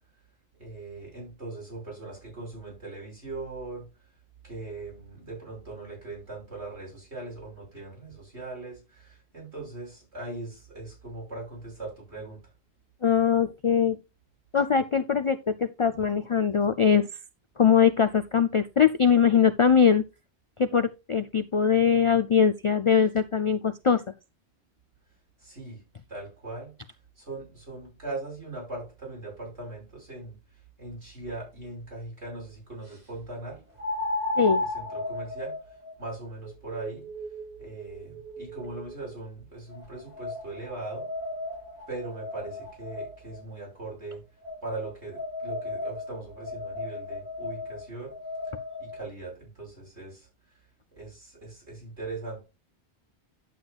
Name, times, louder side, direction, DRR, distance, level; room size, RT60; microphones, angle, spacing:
voice 1, 0.6-3.9 4.4-12.4 25.4-25.8 26.1-26.7 27.2-30.4 30.8-33.6 34.7-35.6 36.0-37.1 37.6-41.1 41.9-44.2 44.6-48.1 48.8-50.3 50.9-52.4, right 2 dB, 80° right, 6.3 m, -40 dB
voice 2, 13.0-14.0 14.5-17.1 17.6-20.0 20.6-24.0 34.4-34.6, left 7 dB, 55° left, 0.3 m, -22 dB
sound 1, 31.2-31.3 33.8-38.9 39.7-43.4 44.4-49.0, left 2 dB, 40° right, 3.2 m, -35 dB
11.0 x 7.9 x 2.4 m
omnidirectional pair, 1.1 m